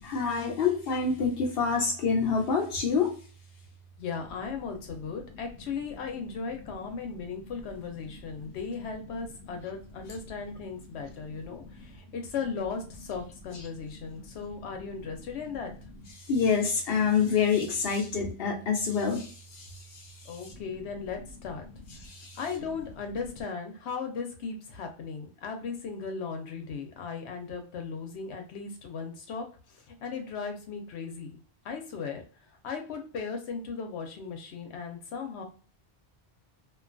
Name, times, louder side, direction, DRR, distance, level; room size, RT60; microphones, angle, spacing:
voice 1, 0.0-3.1 11.5-11.8 16.3-20.7 22.0-22.4, left 5 dB, 65° left, 2 dB, 0.8 m, -27 dB
voice 2, 4.0-15.7 20.2-21.6 22.4-31.3 31.6-32.2 32.6-35.4, left 5 dB, 90° left, 4 dB, 0.9 m, -37 dB
2.4 x 2.3 x 2.5 m, 0.40 s
omnidirectional pair, 1.1 m